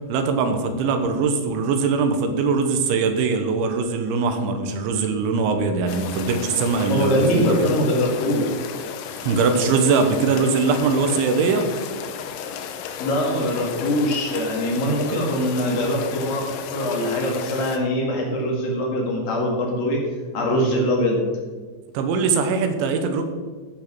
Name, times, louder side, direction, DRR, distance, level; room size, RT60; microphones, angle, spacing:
voice 1, 0.1-7.7 9.2-11.7 21.9-23.3, right 4 dB, 85° right, 7 dB, 3.5 m, -21 dB
sound 1, 5.9-17.8, left 7 dB, 85° left, 3.3 m, -34 dB
voice 2, 6.9-8.4 13.0-16.5 16.7-20.0 20.3-21.2, equal, 60° left, -1 dB, 3.2 m, -22 dB
13.5 x 5.4 x 6.1 m, 1.5 s
omnidirectional pair, 5.3 m